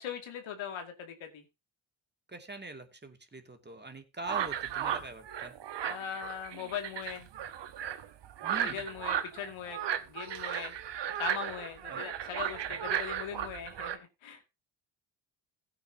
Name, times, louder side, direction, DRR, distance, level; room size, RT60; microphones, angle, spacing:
voice 1, 0.0-1.4 5.8-7.3 8.6-9.8 10.1-10.7 11.2-14.5, left 8 dB, 70° left, 5 dB, 2.5 m, -40 dB
voice 2, 2.3-5.5 8.4-8.9 11.8-12.0 12.7-13.0, right 3 dB, 20° right, 5 dB, 2.6 m, -43 dB
sound 1, 4.3-14.0, right 10 dB, 55° right, 1.3 m, -35 dB
16.0 x 9.2 x 2.9 m, 0.26 s
supercardioid pair, 60°, 49 cm